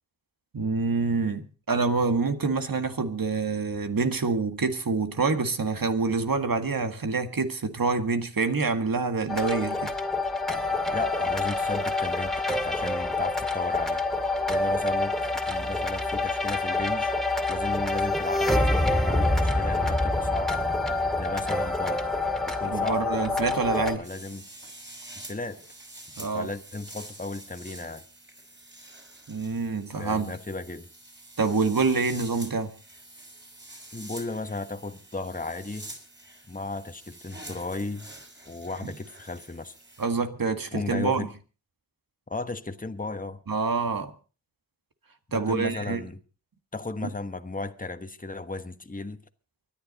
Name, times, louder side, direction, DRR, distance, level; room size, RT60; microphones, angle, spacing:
voice 1, 0.5-9.9 22.6-24.1 26.2-26.5 29.3-30.3 31.4-32.7 38.8-38.9 40.0-41.3 43.5-44.1 45.3-46.0, right 4 dB, 70° right, 1.9 m, -26 dB
sound 1, 9.3-24.0, left 2 dB, ahead, 2.2 m, -26 dB
voice 2, 10.9-14.0 14.5-17.1 17.5-20.6 21.2-22.1 22.5-23.1 23.9-24.5 25.2-25.6 26.2-28.0 30.0-30.9 33.9-35.9 36.5-38.1 38.5-39.7 40.7-41.3 42.3-43.4 45.3-46.2 46.7-49.2, left 3 dB, 25° left, 1.3 m, -35 dB
sound 2, 24.0-40.0, right 1 dB, 30° right, 5.7 m, -47 dB
24.5 x 10.5 x 4.1 m
cardioid pair, 50°, 35 cm